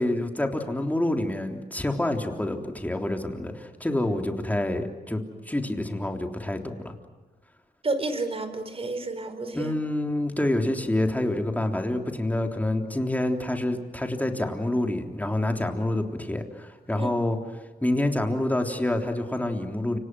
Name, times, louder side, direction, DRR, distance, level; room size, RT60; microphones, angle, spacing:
voice 1, 0.0-6.9 9.5-17.4 17.8-20.0, left 1 dB, 10° left, 3 dB, 3.5 m, -27 dB
voice 2, 7.8-9.7 17.0-17.1, right 2 dB, 35° right, 10 dB, 4.5 m, -30 dB
29.5 x 26.5 x 6.3 m, 1.3 s
cardioid pair, 95°, 16 cm